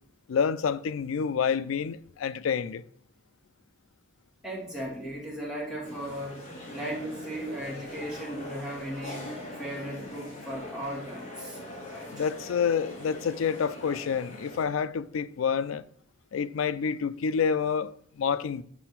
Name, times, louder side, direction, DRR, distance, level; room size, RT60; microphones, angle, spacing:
voice 1, 0.3-2.8 12.1-15.8 16.3-18.6, left 6 dB, 75° left, 0.4 m, -28 dB
voice 2, 4.4-6.4 6.7-9.3 9.6-11.6 11.9-12.2, right 1 dB, 5° right, 2.3 m, -37 dB
sound 1, 5.8-14.6, left 1 dB, 40° left, 2.1 m, -42 dB
6.1 x 4.4 x 5.8 m
head